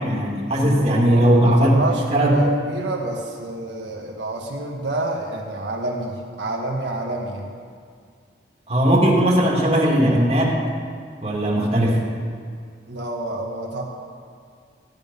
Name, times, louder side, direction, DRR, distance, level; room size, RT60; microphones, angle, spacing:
voice 1, 0.0-1.7 2.1-2.4 8.7-10.6 11.2-12.0, right 1 dB, 35° right, -3 dB, 2.5 m, -18 dB
voice 2, 1.1-7.5 12.9-13.8, right 2 dB, 80° right, -1 dB, 1.6 m, -27 dB
15.5 x 11.0 x 5.5 m, 2.2 s
head